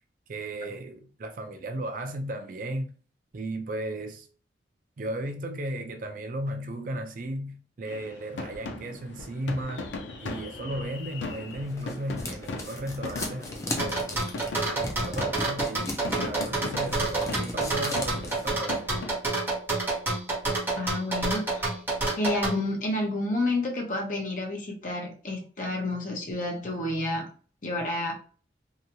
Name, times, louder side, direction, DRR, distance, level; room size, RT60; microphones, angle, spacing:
voice 1, 0.3-2.9 3.3-4.3 5.0-9.9 10.2-14.1 14.8-18.9, right 1 dB, 45° right, 0.4 m, -35 dB
sound 1, 7.9-19.1, left 3 dB, 80° left, 0.4 m, -39 dB
sound 2, 11.3-18.6, left 1 dB, 15° left, 0.4 m, -36 dB
sound 3, 13.8-22.6, right 3 dB, 10° right, 0.9 m, -28 dB
voice 2, 20.7-21.7 22.2-27.3 27.6-28.2, left 2 dB, 45° left, 0.7 m, -30 dB
2.9 x 2.3 x 2.6 m
head